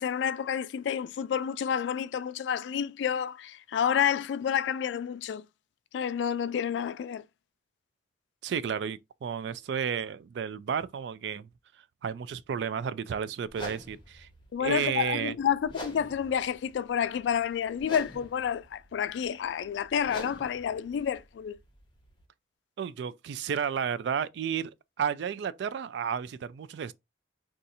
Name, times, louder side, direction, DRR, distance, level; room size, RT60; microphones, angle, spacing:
voice 1, 0.0-5.4 5.9-7.2 14.5-21.6, left 8 dB, 80° left, 0.3 m, -29 dB
voice 2, 8.4-11.5 12.0-14.3 14.6-15.3 22.8-24.7 25.0-26.9, right 7 dB, 70° right, 0.3 m, -32 dB
sound 1, 13.5-22.2, left 1 dB, 25° left, 0.9 m, -46 dB
2.6 x 2.4 x 4.0 m
head